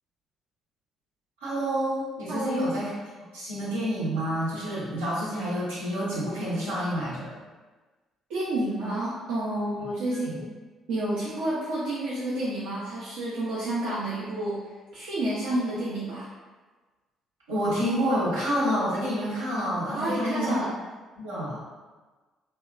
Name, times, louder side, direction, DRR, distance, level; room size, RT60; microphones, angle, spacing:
voice 1, 1.4-2.9 3.3-7.3 10.2-10.4 17.5-20.6 21.1-21.6, equal, 90° right, -10 dB, 0.9 m, -28 dB
voice 2, 2.3-2.8 8.3-10.4 10.9-14.6 14.9-16.3 19.9-20.7, right 1 dB, 70° right, -9 dB, 0.5 m, -29 dB
2.7 x 2.2 x 2.3 m, 1.3 s
hypercardioid pair, 50°, 0 cm